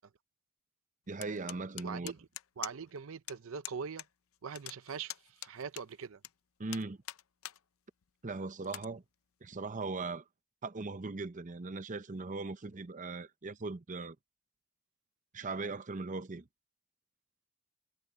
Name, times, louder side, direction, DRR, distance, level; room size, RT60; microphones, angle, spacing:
voice 1, 1.1-2.1 6.6-7.0 8.2-9.0 9.4-10.2 10.6-14.2 15.3-16.4, right 3 dB, 40° right, 0.7 m, -39 dB
sound 1, 1.2-3.0 3.3-3.4 3.6-4.1 4.3-6.3 6.7-7.6 8.0-8.1 8.6-8.9, left 14 dB, 80° left, 0.6 m, -44 dB
voice 2, 1.8-2.3 2.6-4.0 4.4-6.2, right 6 dB, 70° right, 0.6 m, -42 dB
head